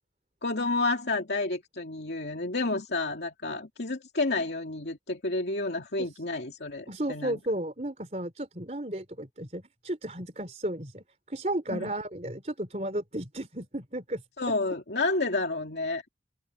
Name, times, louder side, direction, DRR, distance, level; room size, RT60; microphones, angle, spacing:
voice 1, 0.4-7.4 11.7-11.9 14.4-16.1, left 3 dB, 85° left, 2.4 m, -30 dB
voice 2, 6.9-14.2, right 1 dB, 40° right, 3.8 m, -34 dB
open air
head